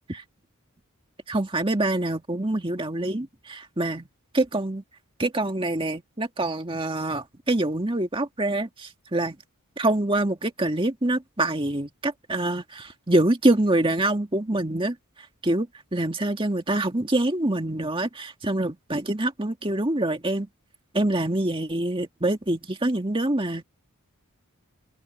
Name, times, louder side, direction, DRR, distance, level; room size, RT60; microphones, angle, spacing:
voice 1, 1.3-4.1 4.3-4.8 5.2-9.4 9.8-15.0 15.4-15.7 15.9-20.5 20.9-23.6, right 1 dB, 25° right, 2.0 m, -25 dB
open air
head